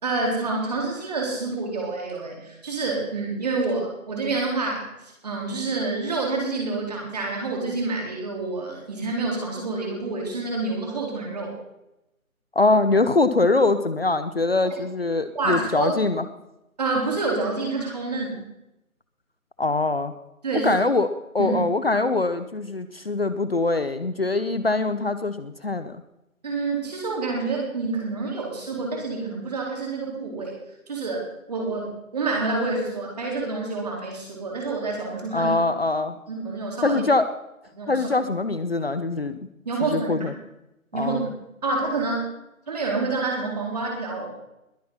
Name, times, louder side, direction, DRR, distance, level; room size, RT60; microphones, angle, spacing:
voice 1, 0.0-11.5 14.7-14.8 15.3-16.0 16.8-18.4 20.4-20.7 21.4-21.6 26.4-30.6 30.9-35.6 36.3-37.0 37.8-38.1 39.6-40.3 40.9-41.3 41.6-42.3 42.7-44.3, right 3 dB, 30° right, -1 dB, 4.2 m, -28 dB
voice 2, 12.5-16.2 19.6-20.1 20.6-21.1 21.3-26.0 35.3-36.2 36.8-37.3 37.9-39.4 39.9-40.3 40.9-41.3, left 3 dB, 45° left, 12 dB, 0.9 m, -23 dB
21.5 x 8.7 x 5.7 m, 0.88 s
figure-of-eight pair, 170°, 42 cm